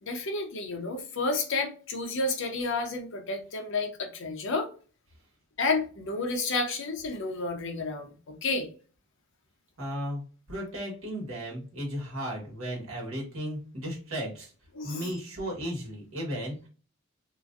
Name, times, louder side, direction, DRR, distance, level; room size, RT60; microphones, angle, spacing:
voice 1, 0.0-4.7 5.6-8.7 14.7-15.1, left 3 dB, 65° left, 4 dB, 0.7 m, -31 dB
voice 2, 9.8-10.2 10.5-14.5 14.8-16.7, equal, 70° right, -2 dB, 1.4 m, -35 dB
2.9 x 2.5 x 2.5 m, 0.37 s
head